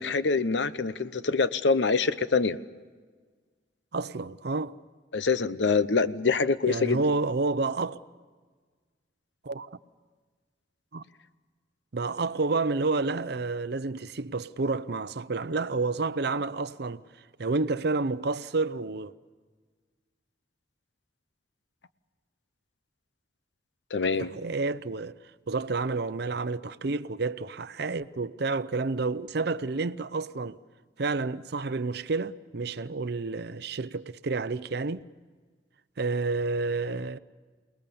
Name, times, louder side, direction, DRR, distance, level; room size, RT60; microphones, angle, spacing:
voice 1, 0.0-2.6 5.1-7.1 23.9-24.3, left 4 dB, 80° left, 0.8 m, -25 dB
voice 2, 3.9-4.7 6.7-8.0 9.4-9.7 10.9-11.0 11.9-17.0 17.4-19.1 24.2-25.1 25.5-30.6 31.0-35.0 36.0-37.2, right 3 dB, 65° right, 0.7 m, -29 dB
28.0 x 19.0 x 7.0 m
head